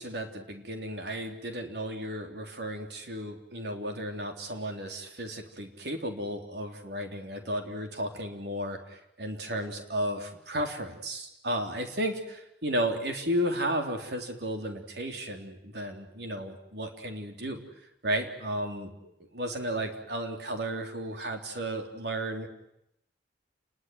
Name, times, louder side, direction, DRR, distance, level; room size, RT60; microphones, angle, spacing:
voice 1, 0.0-17.6 18.0-22.5, right 1 dB, 75° right, 4 dB, 3.7 m, -34 dB
29.5 x 20.5 x 9.5 m, 0.82 s
head